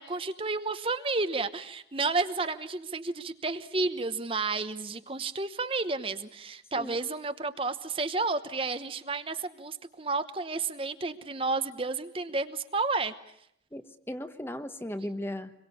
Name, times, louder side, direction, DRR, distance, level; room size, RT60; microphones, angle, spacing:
voice 1, 0.0-13.1, right 3 dB, 30° right, 10 dB, 1.0 m, -31 dB
voice 2, 13.7-15.5, left 1 dB, 15° left, 9 dB, 1.2 m, -37 dB
27.0 x 22.5 x 8.4 m, 0.72 s
head